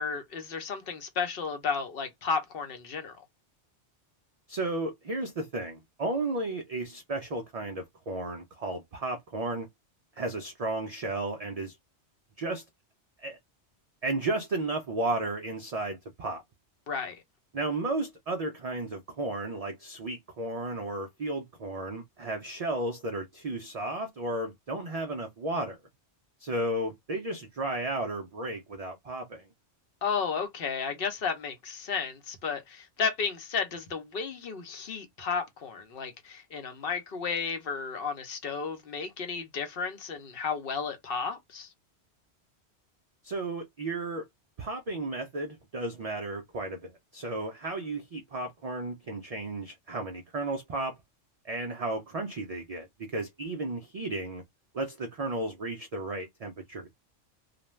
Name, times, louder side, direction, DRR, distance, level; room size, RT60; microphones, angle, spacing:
voice 1, 0.0-3.2 16.9-17.2 30.0-41.7, left 5 dB, 55° left, 0.9 m, -33 dB
voice 2, 4.5-9.7 10.2-11.8 12.4-12.6 13.2-13.4 14.0-16.4 17.5-25.8 26.4-29.4 43.2-44.3 44.6-50.9 51.5-54.4 54.7-56.9, right 2 dB, 60° right, 0.3 m, -33 dB
2.5 x 2.1 x 3.0 m
omnidirectional pair, 1.2 m